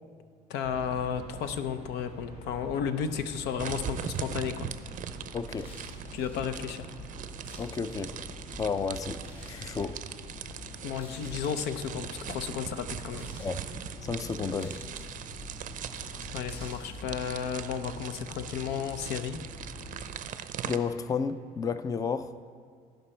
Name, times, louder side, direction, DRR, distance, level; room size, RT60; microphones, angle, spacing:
voice 1, 0.5-4.7 6.1-6.9 10.8-13.3 16.3-19.4, left 7 dB, 85° left, 11 dB, 0.6 m, -33 dB
sound 1, 0.6-20.2, equal, 70° left, 2.2 m, -45 dB
sound 2, 3.6-20.8, right 9 dB, 50° right, 0.5 m, -41 dB
voice 2, 5.3-5.7 7.6-8.2 8.6-9.2 9.5-10.0 13.4-13.6 14.0-14.8 20.6-22.3, left 5 dB, 20° left, 12 dB, 0.4 m, -32 dB
sound 3, 5.5-6.4 7.0-8.1 9.2-9.9 10.8-11.9 12.9-13.6 14.4-15.2 15.9-16.9, left 1 dB, 35° left, 2.4 m, -53 dB
15.0 x 5.3 x 4.4 m, 2.1 s
cardioid pair, 110°, 17 cm